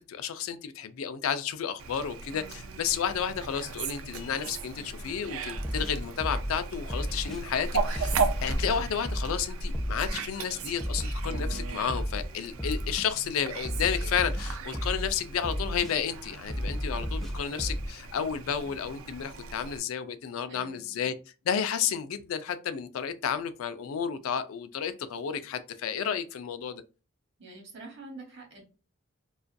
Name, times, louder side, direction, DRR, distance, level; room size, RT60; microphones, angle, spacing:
voice 1, 0.1-21.1 21.5-26.8, left 7 dB, 80° left, 0.3 m, -32 dB
Fowl, 1.8-19.8, right 4 dB, 90° right, 0.4 m, -37 dB
sound 1, 5.5-6.6 6.9-7.4 8.0-9.4 9.7-10.3 10.8-12.3 12.6-13.1 13.7-15.1 15.4-15.9 16.5-17.9, equal, ahead, 0.4 m, -32 dB
voice 2, 20.5-21.1 27.4-28.6, right 3 dB, 60° right, 0.9 m, -46 dB
2.4 x 2.2 x 2.4 m
head